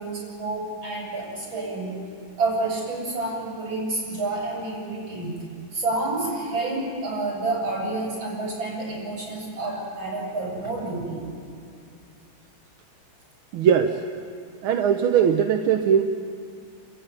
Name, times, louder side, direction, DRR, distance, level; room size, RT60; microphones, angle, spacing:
voice 1, 0.0-2.1 2.4-5.3 5.7-11.2, right 2 dB, 70° right, -3 dB, 7.9 m, -29 dB
voice 2, 13.5-14.0 14.6-16.0, right 8 dB, 90° right, 5 dB, 1.7 m, -20 dB
29.5 x 15.0 x 8.9 m, 2.3 s
omnidirectional pair, 2.2 m